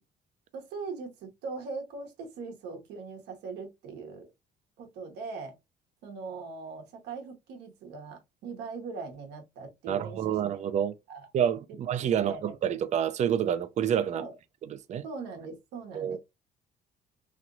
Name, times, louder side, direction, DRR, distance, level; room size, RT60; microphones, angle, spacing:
voice 1, 0.5-4.3 4.8-5.5 6.0-10.4 11.1-11.3 12.1-12.4 14.1-14.3 15.0-16.2, right 4 dB, 85° right, 1.1 m, -40 dB
voice 2, 9.9-10.9 11.3-14.2 14.7-15.0 15.9-16.2, right 9 dB, 45° right, 0.4 m, -28 dB
3.1 x 2.9 x 2.5 m
cardioid pair, 110°, 17 cm